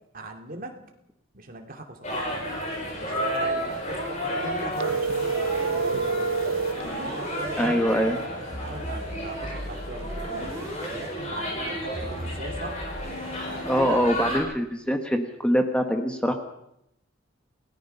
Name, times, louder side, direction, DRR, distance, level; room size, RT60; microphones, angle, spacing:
voice 1, 0.1-0.8 1.3-2.3 3.0-6.6 7.0-7.9 8.4-12.8 13.4-14.0, right 2 dB, 45° right, 3 dB, 2.6 m, -40 dB
sound 1, 2.0-14.4, equal, 35° left, 7.2 m, -32 dB
sound 2, 4.8-6.9, right 4 dB, 85° right, 0.7 m, -27 dB
sound 3, 6.8-7.7 8.5-11.1 11.9-13.6, equal, 15° right, 6.2 m, -37 dB
voice 2, 7.6-8.2 13.7-16.3, equal, 5° left, 5 dB, 1.3 m, -24 dB
28.5 x 17.5 x 5.6 m, 0.80 s
head